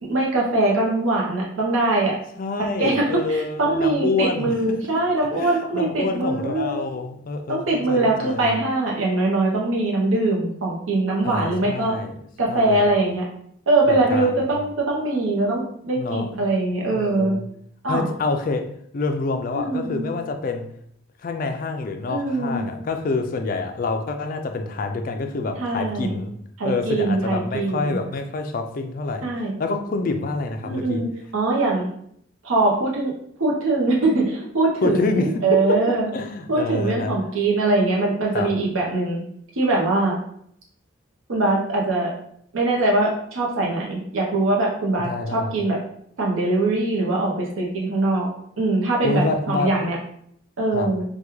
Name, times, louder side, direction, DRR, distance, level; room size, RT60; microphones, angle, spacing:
voice 1, 0.0-2.2 2.8-6.8 7.5-12.0 12.4-13.2 13.7-17.4 17.8-18.0 19.5-20.1 22.1-22.7 25.6-26.1 26.6-28.0 29.2-29.5 30.6-31.9 32.4-33.1 33.4-36.1 36.5-39.2 39.6-40.1 41.3-42.1 42.5-45.8 46.2-48.3 48.6-50.0 50.6-51.0, right 2 dB, 90° right, -2 dB, 0.7 m, -22 dB
voice 2, 2.4-4.8 5.4-8.6 11.2-12.1 12.5-12.9 13.9-14.3 16.0-16.3 16.9-17.4 17.9-20.7 21.2-26.4 26.6-29.3 29.6-31.0 34.8-37.1 38.3-38.5 45.0-45.5 49.0-49.8 50.7-50.9, left 3 dB, 45° left, 6 dB, 0.3 m, -27 dB
3.4 x 2.2 x 3.0 m, 0.68 s
head